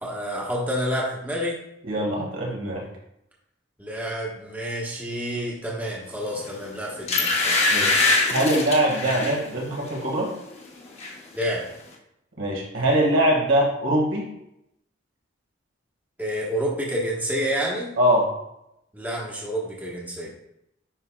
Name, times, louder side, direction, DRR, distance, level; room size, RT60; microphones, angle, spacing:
voice 1, 0.0-1.6 3.8-7.8 11.3-11.7 16.2-17.9 18.9-20.3, equal, 10° right, -4 dB, 1.1 m, -29 dB
voice 2, 1.8-2.8 7.7-8.0 8.3-10.3 12.4-14.3 18.0-18.3, right 1 dB, 85° right, -2 dB, 1.9 m, -22 dB
sound 1, 6.4-6.6 7.1-9.4 9.9-10.1 10.4-11.1 11.4-11.5, left 3 dB, 30° left, 0.9 m, -23 dB
9.8 x 4.9 x 2.3 m, 0.81 s
head